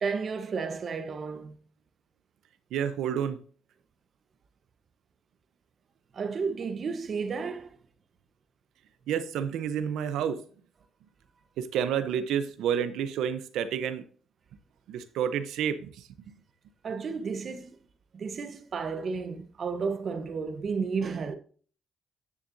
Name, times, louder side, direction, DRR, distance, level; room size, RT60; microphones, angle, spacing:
voice 1, 0.0-1.6 6.1-7.8 16.8-17.8 18.1-21.4, right 5 dB, 50° right, 1.1 m, -32 dB
voice 2, 2.7-3.4 9.1-10.4 11.6-14.0 14.9-16.3, right 8 dB, 85° right, 0.9 m, -30 dB
10.0 x 6.8 x 2.8 m
cardioid pair, 90°, 0 cm